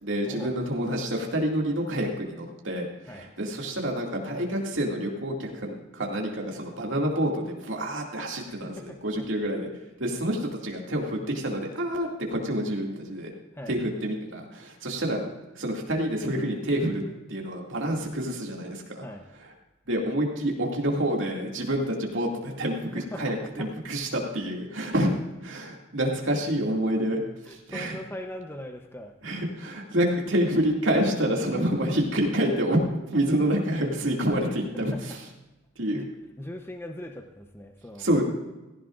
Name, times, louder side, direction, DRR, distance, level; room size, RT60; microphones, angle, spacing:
voice 1, 0.0-9.7 10.0-13.3 13.7-15.3 15.6-17.0 17.3-19.0 19.9-25.1 25.4-27.2 27.5-28.0 29.2-32.8 33.1-35.2 35.8-36.0 38.0-38.2, right 1 dB, 70° right, -1 dB, 2.4 m, -28 dB
voice 2, 8.5-9.3 13.5-13.8 19.0-19.3 23.0-23.2 23.6-23.7 27.5-29.1 34.9-35.0 35.9-36.1 36.4-38.1, left 1 dB, 10° left, 4 dB, 0.7 m, -40 dB
16.5 x 15.0 x 2.5 m, 1.0 s
head